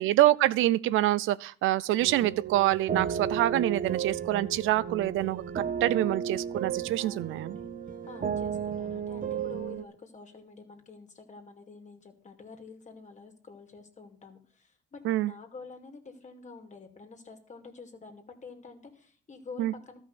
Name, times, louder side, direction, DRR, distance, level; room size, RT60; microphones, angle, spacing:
voice 1, 0.0-7.5 15.0-15.3 19.6-19.7, right 15 dB, 85° right, 0.5 m, -26 dB
sound 1, 2.0-9.8, right 7 dB, 45° right, 1.1 m, -33 dB
voice 2, 7.0-7.7 8.1-20.0, left 4 dB, 35° left, 2.5 m, -48 dB
13.0 x 5.6 x 8.1 m
cardioid pair, 90°, 20 cm